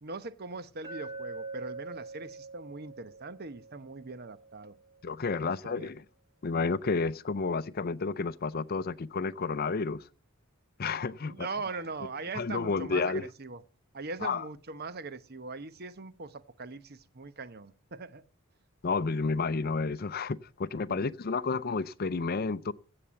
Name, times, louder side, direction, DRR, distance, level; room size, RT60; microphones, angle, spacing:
voice 1, 0.0-4.7 5.4-5.9 11.2-13.6 13.9-18.2 20.9-21.0, right 3 dB, 50° right, 0.9 m, -41 dB
Glass, 0.8-5.0, right 3 dB, 20° right, 5.8 m, -44 dB
voice 2, 5.0-6.0 6.4-10.0 10.8-11.5 12.3-13.2 14.2-14.4 18.8-22.7, left 4 dB, 45° left, 0.5 m, -31 dB
16.5 x 6.8 x 7.1 m
head